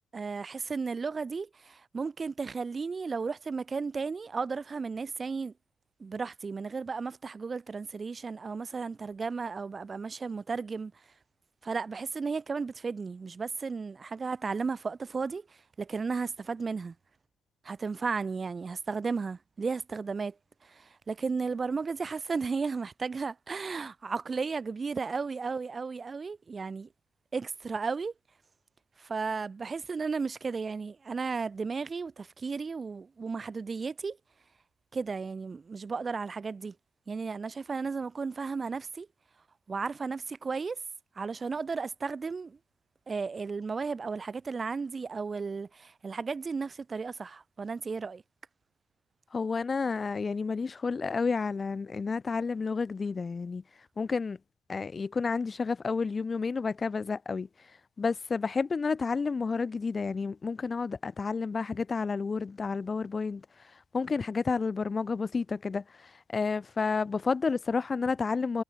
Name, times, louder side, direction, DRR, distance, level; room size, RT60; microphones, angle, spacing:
voice 1, 0.1-5.5 6.0-10.9 11.6-15.4 15.8-16.9 17.6-20.3 20.6-26.9 27.3-28.1 29.0-34.2 34.9-36.7 37.1-39.1 39.7-40.8 41.2-42.6 43.1-48.2, right 4 dB, 35° right, 4.4 m, -34 dB
voice 2, 49.3-53.6 54.0-54.4 54.7-57.5 58.0-63.5 63.9-68.6, left 4 dB, 35° left, 4.0 m, -30 dB
supercardioid pair, 70°, 0 cm